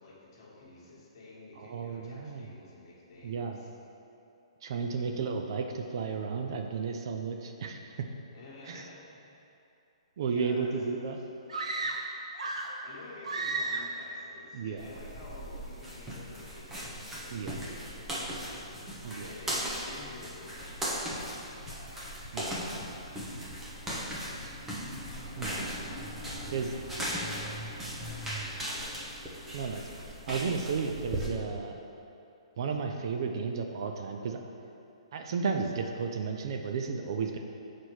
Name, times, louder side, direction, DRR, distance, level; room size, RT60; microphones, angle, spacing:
voice 1, 0.0-3.7 8.3-9.3 10.2-11.1 12.8-21.9 26.2-26.7 27.1-27.5 28.1-29.0, left 3 dB, 40° left, -5 dB, 1.5 m, -50 dB
voice 2, 1.6-2.5 3.2-3.6 4.6-8.1 8.6-8.9 10.2-11.2 14.5-14.8 17.3-17.8 19.0-19.3 22.3-22.7 23.5-23.6 24.4-24.6 25.4-25.6 26.5-26.7 29.5-31.8 32.6-34.4 35.1-37.4, right 5 dB, 45° right, 4 dB, 0.5 m, -33 dB
sound 1, 11.5-12.9 13.2-14.0, right 3 dB, 80° right, 0.7 m, -33 dB
sound 2, 14.8-31.3, equal, 10° right, 0.8 m, -38 dB
sound 3, 21.1-25.1 25.4-26.3, left 3 dB, 70° left, 0.8 m, -53 dB
6.3 x 4.2 x 4.7 m, 2.8 s
hypercardioid pair, 160°, 3 cm